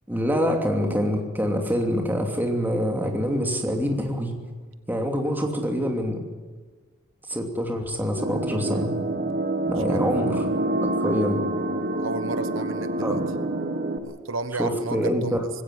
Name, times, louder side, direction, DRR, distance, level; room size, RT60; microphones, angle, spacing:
voice 1, 0.1-4.3 4.9-6.2 7.3-8.9 9.7-10.5 11.0-11.4 13.0-13.2 14.6-15.4, equal, 10° right, 2 dB, 2.8 m, -25 dB
sound 1, 8.2-14.0, right 1 dB, 50° right, 1.6 m, -27 dB
voice 2, 11.9-13.2 14.0-15.4, right 3 dB, 75° right, 11 dB, 1.1 m, -33 dB
20.0 x 17.0 x 9.9 m, 1.4 s
head